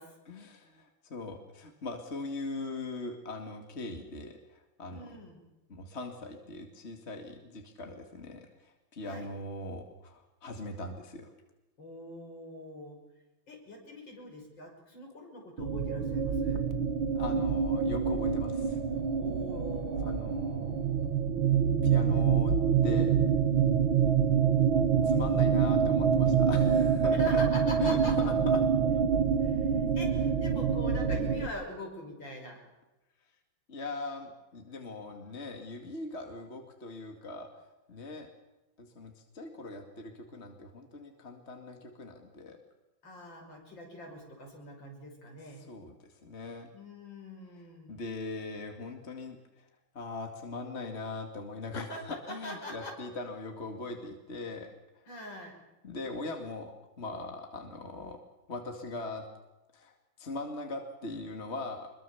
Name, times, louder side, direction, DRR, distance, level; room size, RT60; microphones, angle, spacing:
voice 1, 0.3-5.1 5.7-11.3 17.1-18.8 20.0-20.7 21.8-23.2 25.0-27.4 27.8-28.6 33.7-38.3 38.8-42.6 45.7-46.0 46.2-46.7 47.9-49.7 49.9-55.1 55.8-56.7 57.0-58.2 58.5-59.2 59.7-61.9, left 2 dB, 35° left, 4 dB, 2.4 m, -40 dB
voice 2, 4.9-5.4 9.0-9.3 11.8-13.0 13.5-16.7 19.2-20.1 27.1-28.2 29.4-32.6 43.0-45.7 46.7-48.0 51.7-53.0 55.1-55.6, left 1 dB, 70° left, 1 dB, 6.6 m, -43 dB
sound 1, 15.6-31.5, right 7 dB, 90° right, 2.1 m, -26 dB
25.0 x 22.5 x 7.1 m, 1.0 s
omnidirectional pair, 2.1 m